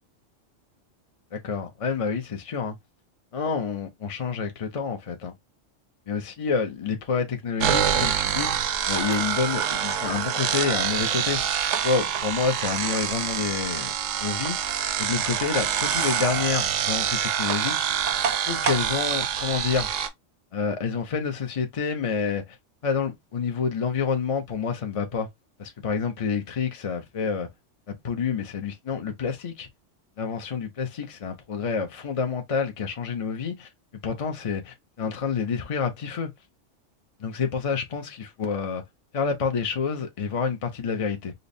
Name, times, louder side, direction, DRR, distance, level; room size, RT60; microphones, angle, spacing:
voice 1, 1.3-2.7 3.3-5.3 6.1-11.6 11.8-13.9 14.2-14.6 15.0-17.8 18.5-19.9 20.5-22.4 22.8-25.3 25.6-27.5 27.9-29.7 30.2-33.7 34.0-36.3 37.2-38.8 39.1-41.3, left 5 dB, 50° left, 0.4 m, -28 dB
sound 1, 7.6-20.1, right 8 dB, 80° right, 0.9 m, -26 dB
5.2 x 2.0 x 2.6 m
omnidirectional pair, 1.3 m